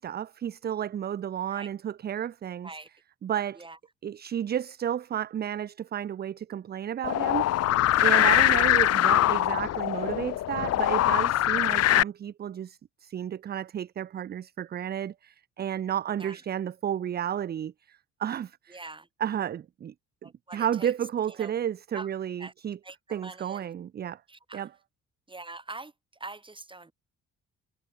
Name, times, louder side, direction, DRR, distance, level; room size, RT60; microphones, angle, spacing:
voice 1, 0.0-2.7 3.2-3.6 4.0-7.4 8.0-18.8 19.2-19.9 20.2-22.8 23.1-24.2 24.5-24.7, right 9 dB, 35° right, 0.4 m, -32 dB
sound 1, 7.0-12.0, left 13 dB, 55° left, 0.5 m, -23 dB
voice 2, 8.2-8.6 16.2-16.4 18.7-19.1 20.2-20.9 21.3-21.5 21.9-22.1 22.4-22.5 22.8-23.7 24.3-24.7 25.3-26.9, right 3 dB, 15° right, 2.6 m, -44 dB
cardioid pair, 95°, 31 cm